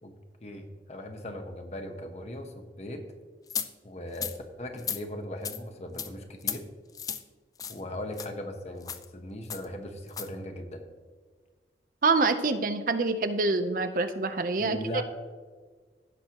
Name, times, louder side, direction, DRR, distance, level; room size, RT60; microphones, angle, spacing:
voice 1, 0.4-3.0 3.8-6.6 7.7-10.8 14.6-15.0, left 1 dB, 40° left, 5 dB, 1.0 m, -38 dB
sound 1, 3.5-3.7 4.1-4.4 4.8-5.0 5.4-5.6 6.0-6.1 6.4-6.6 6.9-7.2 7.6-7.8 8.1-8.3 8.8-9.0 9.5-9.6 10.1-10.3, left 7 dB, 20° left, 0.3 m, -34 dB
voice 2, 12.0-15.0, right 3 dB, 50° right, 9 dB, 0.6 m, -26 dB
16.0 x 6.1 x 2.9 m, 1.5 s
head